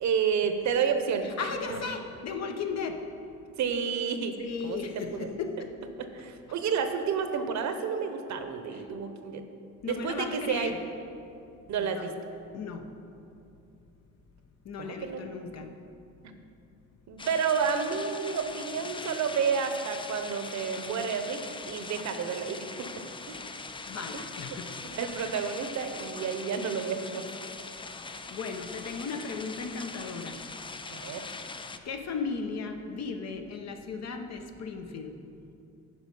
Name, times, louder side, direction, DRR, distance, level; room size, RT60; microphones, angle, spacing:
voice 1, 0.0-1.8 3.6-5.3 6.0-9.4 9.9-10.7 11.7-12.1 14.8-15.5 17.1-23.4 24.1-24.2 24.8-27.2 30.9-31.2, right 6 dB, 65° right, 7 dB, 0.8 m, -30 dB
voice 2, 1.2-3.0 4.4-5.7 8.7-8.8 9.8-10.8 11.8-12.0 12.5-12.9 14.6-15.7 23.9-24.7 28.0-30.4 31.8-35.2, left 5 dB, 60° left, 5 dB, 0.9 m, -36 dB
sound 1, 17.2-31.8, left 4 dB, 15° left, 0.4 m, -41 dB
9.8 x 5.0 x 5.4 m, 2.6 s
cardioid pair, 90°, 30 cm